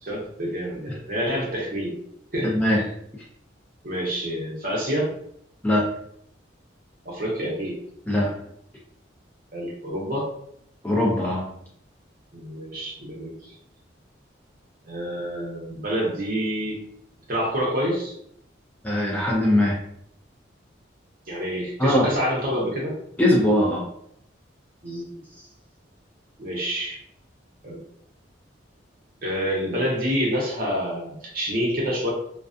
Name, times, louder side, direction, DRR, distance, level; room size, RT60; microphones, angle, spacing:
voice 1, 0.0-1.9 2.3-2.5 3.8-5.1 7.0-7.8 9.5-10.3 12.3-13.5 14.9-16.8 17.3-18.2 21.3-22.9 24.8-25.2 26.4-27.0 27.6-27.8 29.2-32.1, equal, 45° right, -3 dB, 0.8 m, -27 dB
voice 2, 2.4-2.8 5.6-5.9 8.1-8.3 10.8-11.5 18.8-19.8 21.8-22.1 23.2-23.9 24.9-25.0, left 1 dB, 10° left, -3 dB, 0.3 m, -21 dB
2.4 x 2.3 x 2.4 m, 0.69 s
head